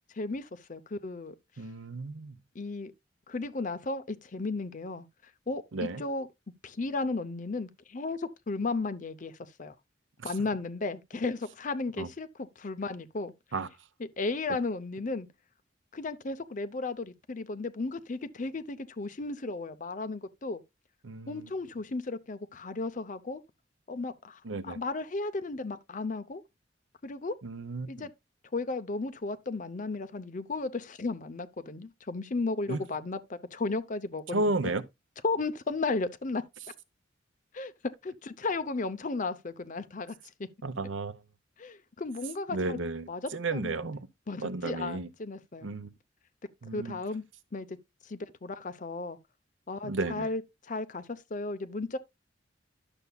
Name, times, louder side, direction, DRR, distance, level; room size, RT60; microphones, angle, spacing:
voice 1, 0.1-1.4 2.5-2.9 3.3-5.1 5.5-6.3 6.6-9.3 9.6-9.7 10.2-13.3 14.2-15.3 15.9-20.6 21.3-23.4 23.9-26.4 27.0-27.4 27.9-28.1 28.5-34.7 35.2-36.4 37.5-37.7 38.0-40.5 41.6-42.8 43.1-43.8 44.3-45.7 46.7-47.2 47.5-47.8 48.0-49.2 49.7-50.4 50.7-52.0, left 3 dB, 40° left, 0.6 m, -34 dB
voice 2, 1.6-2.3 5.7-6.0 10.2-10.3 12.0-12.1 13.5-13.7 21.0-21.5 24.4-24.8 27.4-28.1 32.7-32.8 34.3-34.8 40.6-41.2 42.5-44.0 44.4-45.1 45.6-45.9 46.6-47.0 49.8-50.3, right 2 dB, 80° right, 0.7 m, -33 dB
11.0 x 6.9 x 2.3 m
head